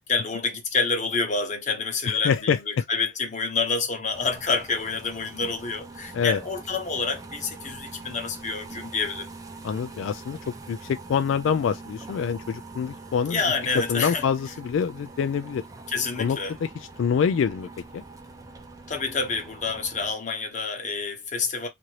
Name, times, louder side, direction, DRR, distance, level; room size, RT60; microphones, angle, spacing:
voice 1, 0.1-9.3 13.3-14.3 15.9-16.6 18.9-21.7, left 4 dB, 40° left, 0.9 m, -28 dB
voice 2, 2.2-2.8 6.1-6.4 9.6-10.4 10.7-13.4 13.9-15.6 16.2-16.7 17.0-17.7 17.9-18.0, left 7 dB, 85° left, 0.3 m, -25 dB
sound 1, 4.1-20.1, right 3 dB, 20° right, 0.5 m, -43 dB
2.8 x 2.6 x 3.0 m
head